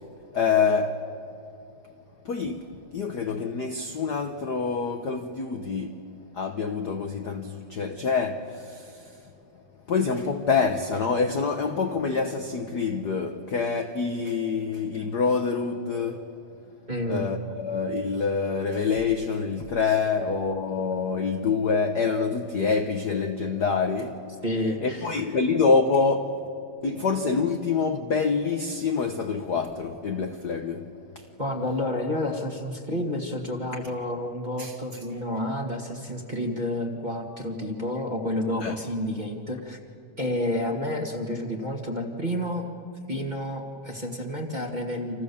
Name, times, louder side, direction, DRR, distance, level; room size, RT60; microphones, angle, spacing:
voice 1, 0.3-1.1 2.2-6.0 6.3-9.1 9.9-16.3 17.1-24.2 24.8-26.4 26.8-30.8 31.1-31.2 34.6-34.7 38.6-38.7, left 5 dB, 65° left, 0.9 m, -26 dB
voice 2, 16.9-17.3 24.4-25.2 31.4-39.8 40.2-42.7 43.1-45.2, left 1 dB, 20° right, 1.6 m, -30 dB
30.0 x 27.0 x 7.0 m
omnidirectional pair, 3.3 m